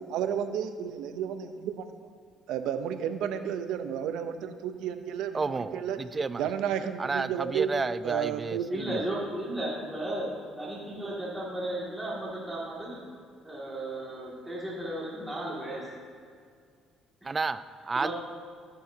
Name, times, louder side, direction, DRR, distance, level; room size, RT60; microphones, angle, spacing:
voice 1, 0.0-1.9 2.5-6.0 6.4-7.7 8.0-8.7, right 8 dB, 80° right, 8 dB, 0.7 m, -32 dB
voice 2, 5.3-6.5 7.0-9.0 17.2-18.1, right 4 dB, 25° right, 14 dB, 0.4 m, -31 dB
voice 3, 8.7-13.1 13.4-15.9 17.2-17.4 17.9-18.1, right 1 dB, 5° right, -6 dB, 2.3 m, -35 dB
13.5 x 10.0 x 2.8 m, 2.1 s
cardioid pair, 110°, 0 cm